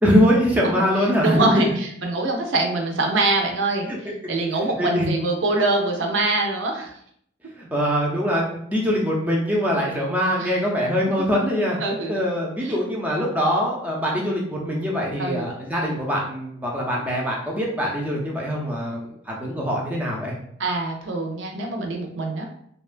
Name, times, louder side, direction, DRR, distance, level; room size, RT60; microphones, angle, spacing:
voice 1, 0.0-1.7 4.8-5.1 7.6-11.8 12.1-20.3, equal, 10° right, -3 dB, 0.5 m, -23 dB
voice 2, 1.2-3.9 4.3-6.9 10.4-10.6 11.8-12.2 12.6-12.8 15.2-15.5 20.6-22.5, right 2 dB, 75° right, 2 dB, 0.5 m, -24 dB
2.8 x 2.2 x 2.4 m, 0.67 s
head